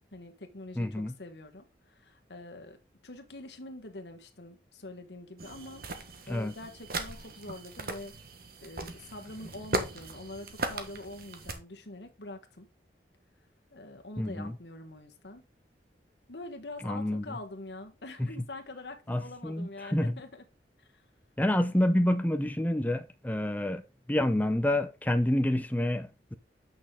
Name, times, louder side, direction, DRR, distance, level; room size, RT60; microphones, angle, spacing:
voice 1, 0.1-2.8 3.0-5.8 6.3-8.1 8.6-12.7 13.7-15.4 16.3-20.4 20.8-20.9, left 2 dB, 75° left, 1.4 m, -45 dB
voice 2, 0.8-1.1 6.3-6.5 14.2-14.6 16.8-17.4 18.2-18.3 19.1-20.2 21.4-23.8 24.1-26.4, left 1 dB, 10° left, 0.6 m, -28 dB
sound 1, 5.4-11.5, right 2 dB, 55° right, 1.4 m, -38 dB
8.5 x 6.2 x 3.8 m
head